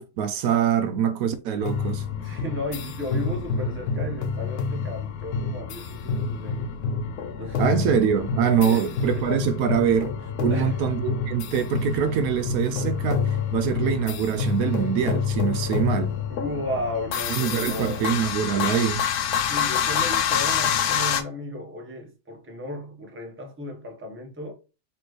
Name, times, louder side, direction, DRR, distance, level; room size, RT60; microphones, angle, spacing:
voice 1, 0.0-2.0 7.6-10.1 10.4-16.1 17.3-19.0, right 8 dB, 75° right, 1.0 m, -24 dB
sound 1, 1.6-21.2, left 6 dB, 85° left, 1.1 m, -27 dB
voice 2, 2.2-6.7 7.4-7.8 8.6-8.9 10.5-10.8 16.3-18.1 19.5-24.5, left 1 dB, 10° right, 0.8 m, -34 dB
4.3 x 3.1 x 3.1 m
omnidirectional pair, 1.6 m